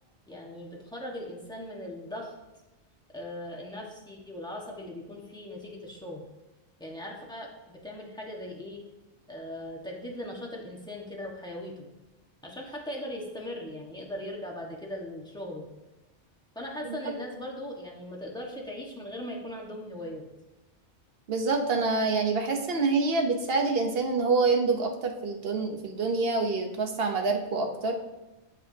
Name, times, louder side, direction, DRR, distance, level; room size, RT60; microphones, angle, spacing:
voice 1, 0.3-2.3 3.1-6.2 6.8-8.8 9.3-11.9 12.4-15.7 16.5-20.2, left 1 dB, 5° left, -2 dB, 1.4 m, -39 dB
voice 2, 21.3-28.0, right 3 dB, 55° right, 4 dB, 1.2 m, -26 dB
9.1 x 7.4 x 2.8 m, 1.0 s
omnidirectional pair, 1.2 m